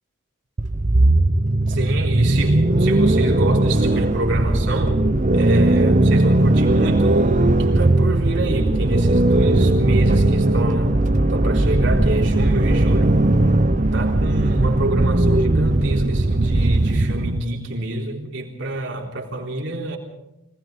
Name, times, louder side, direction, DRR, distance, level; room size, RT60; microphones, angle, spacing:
sound 1, 0.6-17.4, right 2 dB, 35° right, 0.8 m, -18 dB
voice 1, 1.0-1.3 1.7-5.0 5.3-11.0 11.3-13.2 13.9-20.0, right 2 dB, 60° right, 0 dB, 3.8 m, -27 dB
25.5 x 19.5 x 5.3 m, 0.90 s
head